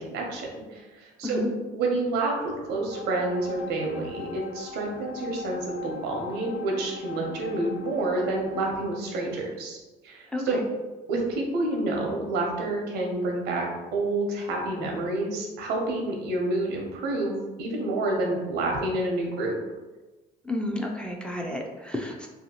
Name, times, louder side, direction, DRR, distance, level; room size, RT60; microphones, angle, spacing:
voice 1, 0.0-1.4 1.7-9.8 10.0-10.6 11.1-19.6, right 2 dB, 85° right, 0 dB, 0.7 m, -28 dB
sound 1, 2.9-8.9, left 5 dB, 65° left, 0.5 m, -41 dB
voice 2, 10.3-10.6 20.4-22.3, left 1 dB, 5° left, 0 dB, 0.3 m, -31 dB
2.7 x 2.3 x 2.8 m, 1.2 s
cardioid pair, 110°, 17 cm